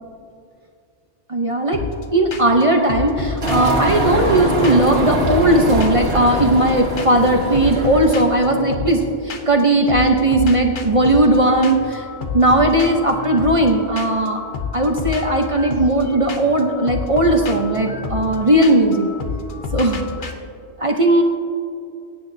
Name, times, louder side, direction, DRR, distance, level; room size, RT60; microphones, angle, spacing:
voice 1, 1.3-1.8 2.1-12.1 12.3-14.4 14.7-19.1 19.7-20.0 20.8-21.2, right 1 dB, 35° right, 2 dB, 0.8 m, -17 dB
sound 1, 1.7-2.0 2.3-2.6 2.9-5.0 5.2-6.7 7.0-7.3 7.5-9.6 9.9-20.3, left 5 dB, 50° left, 0.9 m, -30 dB
sound 2, 3.4-8.6, right 1 dB, 60° right, 1.8 m, -23 dB
22.5 x 9.8 x 2.7 m, 2.5 s
omnidirectional pair, 1.2 m